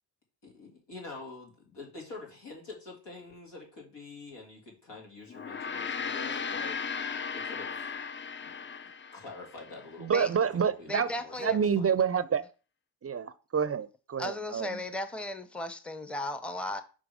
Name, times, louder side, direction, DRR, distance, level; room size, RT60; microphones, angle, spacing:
voice 1, 0.4-6.8 7.3-7.9 8.4-8.7 9.1-12.0, left 3 dB, 85° left, 2.7 m, -46 dB
Gong, 5.3-9.9, left 6 dB, 30° left, 0.4 m, -36 dB
voice 2, 10.0-11.1 11.4-12.4 13.0-14.8, right 7 dB, 35° right, 0.5 m, -28 dB
voice 3, 10.9-11.7 14.2-16.8, left 1 dB, 5° left, 0.7 m, -36 dB
6.1 x 3.7 x 5.0 m
cardioid pair, 65°, 41 cm